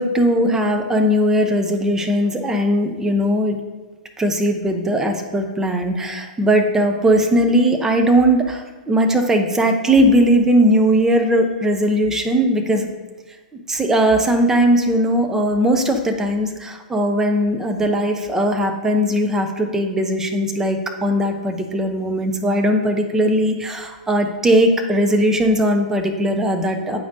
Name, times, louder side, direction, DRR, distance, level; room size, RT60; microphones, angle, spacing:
voice 1, 0.0-3.6 4.2-12.9 13.7-27.0, equal, 10° right, 4 dB, 0.7 m, -18 dB
8.4 x 5.1 x 2.7 m, 1.3 s
figure-of-eight pair, 110°, 5 cm